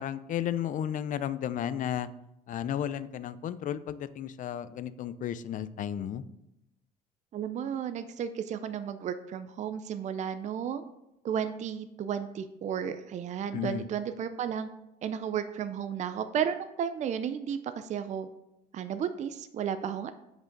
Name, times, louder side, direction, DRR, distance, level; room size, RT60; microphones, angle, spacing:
voice 1, 0.0-2.1 2.5-6.2 13.5-13.9, left 10 dB, 50° left, 15 dB, 0.5 m, -33 dB
voice 2, 7.3-10.8 11.2-14.7 15.0-18.3 18.7-20.1, right 8 dB, 45° right, 10 dB, 0.5 m, -33 dB
6.2 x 5.3 x 5.2 m, 0.87 s
cardioid pair, 110°, 17 cm